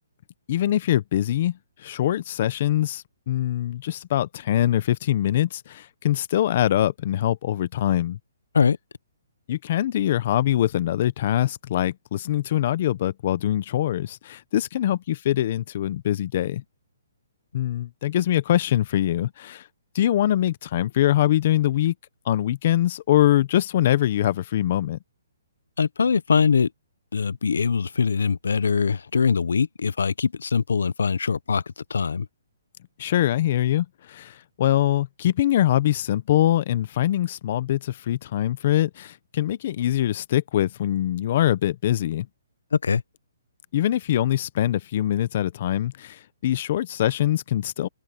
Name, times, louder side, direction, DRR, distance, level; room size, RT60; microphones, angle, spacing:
voice 1, 0.5-8.2 9.5-16.6 17.5-19.7 19.9-21.9 22.3-25.0 33.0-42.3 43.7-47.9, left 12 dB, 35° left, 0.7 m, -23 dB
voice 2, 25.8-26.7 27.1-31.6 31.9-32.3 42.8-43.0, left 5 dB, 85° left, 0.7 m, -22 dB
hypercardioid pair, 170°, 0 cm